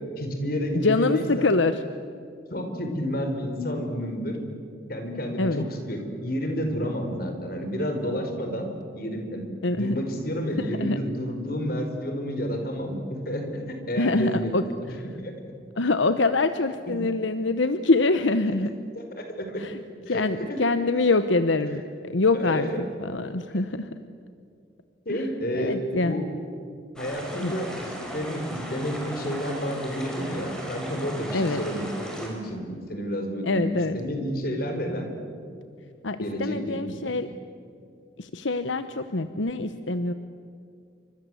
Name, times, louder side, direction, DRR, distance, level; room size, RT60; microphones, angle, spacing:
voice 1, 0.2-1.5 2.5-4.4 4.9-8.7 8.9-9.5 9.8-13.6 13.9-14.5 14.8-15.3 18.9-19.6 20.1-20.2 20.5-20.6 22.3-22.6 25.0-26.2 27.0-31.9 32.1-33.7 33.9-35.1 36.2-37.1, equal, 50° left, 5 dB, 4.9 m, -30 dB
voice 2, 0.7-1.8 5.4-5.7 9.6-10.0 10.6-11.0 14.0-14.7 15.8-18.7 19.6-19.8 20.1-22.7 23.0-23.9 25.1-25.3 25.5-26.1 27.4-27.6 31.3-31.6 33.4-34.0 36.0-37.3 38.2-40.1, left 3 dB, 80° left, 10 dB, 1.0 m, -24 dB
sound 1, 27.0-32.3, equal, 5° left, 5.6 m, -36 dB
29.0 x 25.5 x 7.9 m, 2.4 s
head